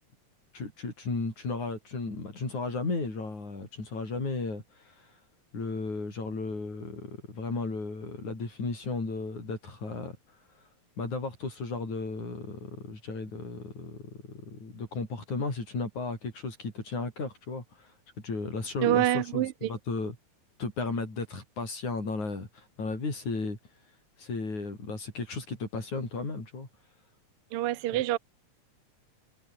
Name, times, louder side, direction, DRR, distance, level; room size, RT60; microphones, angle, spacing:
voice 1, 0.5-5.1 5.5-10.2 11.0-17.9 18.2-20.2 20.6-23.6 24.2-26.7, left 3 dB, 75° left, 9.0 m, -35 dB
voice 2, 18.8-19.7 27.5-28.2, right 14 dB, 70° right, 1.4 m, -26 dB
omnidirectional pair, 3.4 m